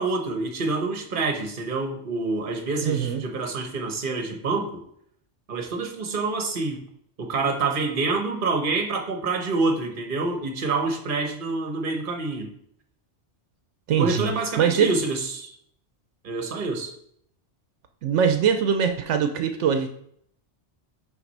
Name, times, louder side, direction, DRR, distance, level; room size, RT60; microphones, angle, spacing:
voice 1, 0.0-4.8 5.5-6.8 7.2-12.5 14.0-15.5 16.2-16.9, right 3 dB, 50° right, 4 dB, 1.1 m, -27 dB
voice 2, 2.8-3.2 13.9-14.3 14.6-14.9 18.0-19.9, right 7 dB, 80° right, 7 dB, 0.9 m, -22 dB
5.8 x 4.1 x 5.4 m, 0.68 s
omnidirectional pair, 1.2 m